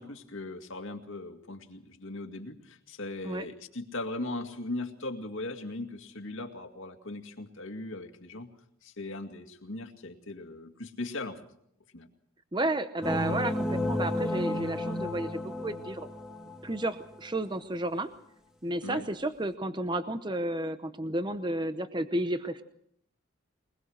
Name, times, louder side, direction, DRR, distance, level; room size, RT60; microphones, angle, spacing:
voice 1, 0.0-8.5 8.8-11.4 11.9-12.1 18.8-19.1, left 2 dB, 65° left, 5 dB, 2.2 m, -39 dB
voice 2, 12.5-16.1 16.6-18.1 18.6-22.6, right 1 dB, 20° right, 11 dB, 0.8 m, -32 dB
sound 1, 13.0-17.0, left 1 dB, 5° right, 2.1 m, -32 dB
23.5 x 21.0 x 6.4 m, 0.71 s
head